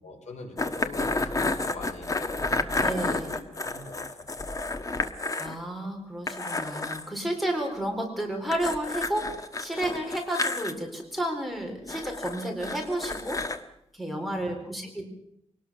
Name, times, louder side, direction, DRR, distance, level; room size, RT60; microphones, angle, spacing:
voice 1, 0.0-4.5 14.2-14.6, left 3 dB, 80° left, 3 dB, 4.8 m, -43 dB
sound 1, 0.6-5.5 5.8-5.9 6.3-7.1 8.5-10.7 11.9-13.6, left 2 dB, 30° left, 1.3 m, -30 dB
voice 2, 2.8-3.3 5.4-13.4 13.9-15.1, right 1 dB, ahead, 2 dB, 4.1 m, -31 dB
23.5 x 19.0 x 6.4 m, 0.77 s
wide cardioid pair, 150°, 12 cm